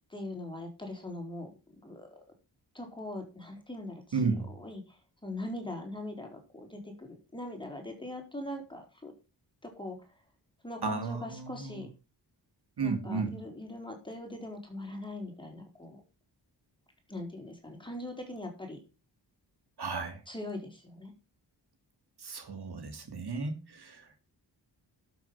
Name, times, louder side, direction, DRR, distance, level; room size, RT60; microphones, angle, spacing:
voice 1, 0.1-1.5 1.8-2.1 2.7-9.1 9.6-10.0 10.6-11.9 12.8-16.0 17.1-18.8 20.3-21.1, left 1 dB, 10° left, 2 dB, 4.6 m, -41 dB
voice 2, 4.1-4.5 10.8-11.8 12.8-13.4 19.8-20.2 22.2-24.2, right 4 dB, 65° right, 6 dB, 2.9 m, -34 dB
12.0 x 7.5 x 5.8 m, 0.30 s
wide cardioid pair, 130°, 42 cm